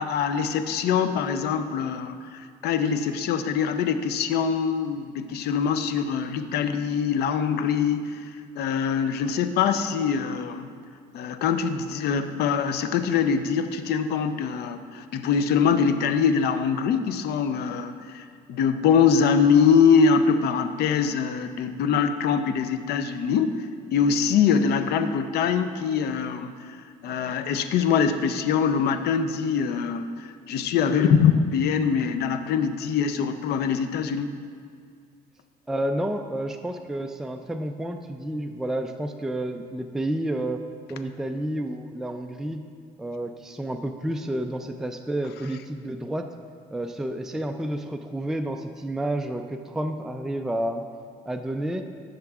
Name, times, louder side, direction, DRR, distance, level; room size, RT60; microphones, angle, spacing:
voice 1, 0.0-8.2 8.6-10.7 11.1-23.5 23.9-26.8 27.0-34.3, left 6 dB, 75° left, 9 dB, 0.6 m, -23 dB
voice 2, 35.7-40.6 40.9-42.6 43.0-46.3 46.7-50.8 51.3-51.8, right 1 dB, 5° right, 5 dB, 0.4 m, -30 dB
14.0 x 6.7 x 2.4 m, 2.1 s
cardioid pair, 110°, 17 cm